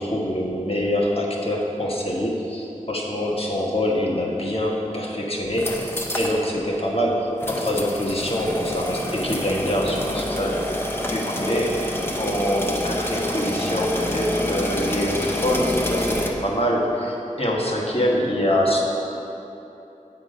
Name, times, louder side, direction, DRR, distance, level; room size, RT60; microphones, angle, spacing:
voice 1, 0.0-10.8 11.1-18.8, equal, 45° left, -2 dB, 1.3 m, -25 dB
sound 1, 5.4-6.4 6.7-6.8 7.4-16.3, left 1 dB, 15° left, 0.8 m, -27 dB
8.2 x 6.0 x 5.1 m, 2.9 s
wide cardioid pair, 45°, 14 cm